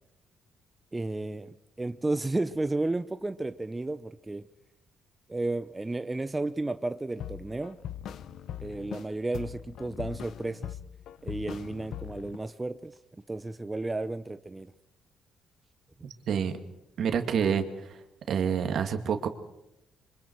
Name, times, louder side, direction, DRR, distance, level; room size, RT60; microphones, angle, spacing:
voice 1, 0.9-4.5 5.3-7.8 8.6-10.8 11.2-13.0 13.3-14.7, right 2 dB, 15° right, 11 dB, 0.7 m, -33 dB
sound 1, 7.2-9.1 9.3-12.4, left 10 dB, 70° left, 0.9 m, -40 dB
voice 2, 17.0-17.9 18.3-19.3, right 7 dB, 65° right, 7 dB, 2.2 m, -27 dB
27.5 x 24.5 x 4.6 m, 0.91 s
cardioid pair, 90°, 0 cm